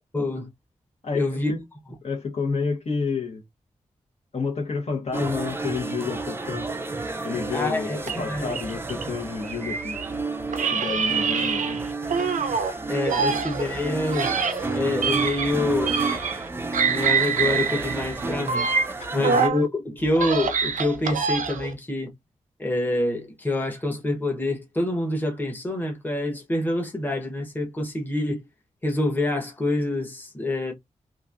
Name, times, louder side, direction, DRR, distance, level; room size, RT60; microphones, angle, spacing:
voice 1, 0.1-0.5 1.1-1.5 7.5-8.5 12.9-14.3 14.7-16.0 16.9-18.7 19.1-22.1 22.6-28.4 28.8-30.7, left 2 dB, 15° left, 1.0 m, -26 dB
voice 2, 1.0-1.6 2.0-3.4 4.3-6.7 7.2-10.0 10.7-11.8 19.2-19.3, left 5 dB, 55° left, 1.1 m, -30 dB
sound 1, 5.1-19.5, right 3 dB, 20° right, 0.5 m, -31 dB
sound 2, 8.0-10.1 10.5-12.7 13.0-16.5 16.7-19.6 20.0-21.7, right 5 dB, 85° right, 0.5 m, -26 dB
3.0 x 2.5 x 2.5 m
wide cardioid pair, 100°, 13 cm